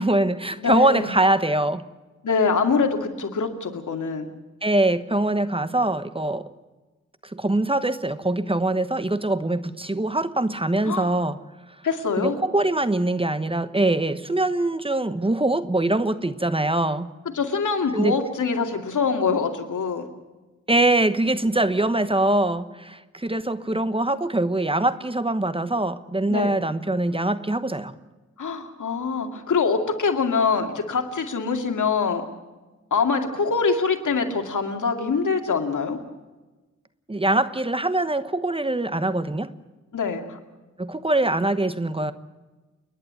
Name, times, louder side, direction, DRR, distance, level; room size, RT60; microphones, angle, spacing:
voice 1, 0.0-1.8 4.6-6.5 7.3-11.4 12.2-17.1 17.9-18.2 20.7-27.9 37.1-39.5 40.8-42.1, right 2 dB, 20° right, 12 dB, 1.1 m, -23 dB
voice 2, 0.6-1.1 2.2-4.3 10.9-11.1 11.8-12.4 17.3-20.0 26.3-26.6 28.4-32.2 32.9-36.0 39.9-40.4, left 5 dB, 85° left, 4 dB, 2.5 m, -24 dB
30.0 x 11.0 x 9.5 m, 1.2 s
wide cardioid pair, 85°, 30 cm